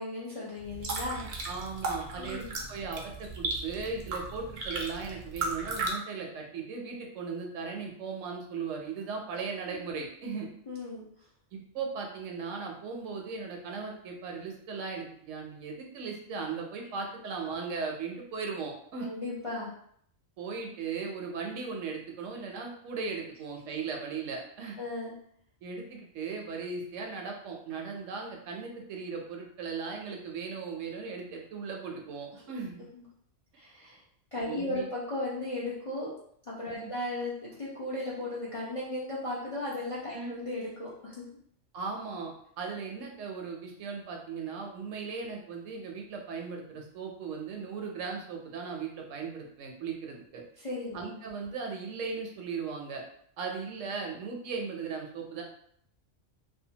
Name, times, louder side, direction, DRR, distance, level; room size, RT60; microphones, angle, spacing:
voice 1, 0.0-1.3 2.2-2.5 10.7-11.1 19.0-19.7 24.8-25.1 32.9-33.0 33.5-34.0 34.3-36.1 36.5-41.2 50.6-51.0, left 2 dB, 45° left, -7 dB, 0.4 m, -36 dB
sound 1, 0.6-5.9, right 3 dB, 60° right, 0.5 m, -36 dB
voice 2, 1.4-2.4 2.7-10.5 11.5-19.1 20.4-24.8 25.6-32.8 34.4-34.9 36.7-36.9 40.1-40.3 41.7-50.4 50.9-53.0 53.4-55.4, right 5 dB, 80° right, 1 dB, 0.9 m, -37 dB
2.7 x 2.2 x 2.7 m, 0.68 s
omnidirectional pair, 1.3 m